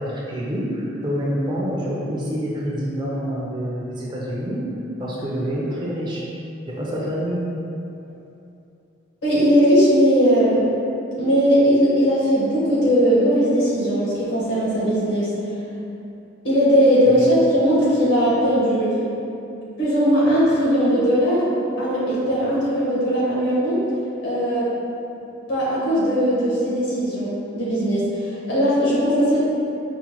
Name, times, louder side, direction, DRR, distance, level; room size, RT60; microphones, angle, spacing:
voice 1, 0.0-4.6 5.0-6.2 6.7-7.4, equal, 25° right, -5 dB, 0.4 m, -27 dB
voice 2, 9.2-10.6 11.2-15.3 16.4-19.0 19.8-21.5 21.8-23.8 24.2-24.7 25.5-29.4, equal, 65° left, -8 dB, 1.2 m, -19 dB
4.8 x 2.1 x 2.9 m, 2.7 s
head